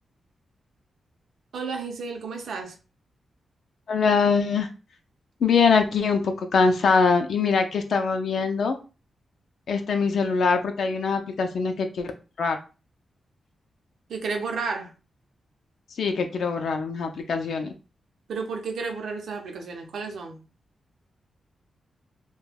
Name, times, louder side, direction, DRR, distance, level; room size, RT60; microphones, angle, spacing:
voice 1, 1.5-2.8 14.1-14.9 18.3-20.4, right 4 dB, 80° right, 0.6 m, -32 dB
voice 2, 3.9-4.7 5.4-8.8 9.7-12.1 12.4-12.6 16.0-17.7, left 5 dB, 70° left, 0.4 m, -23 dB
2.2 x 2.2 x 3.3 m
wide cardioid pair, 125°, 0 cm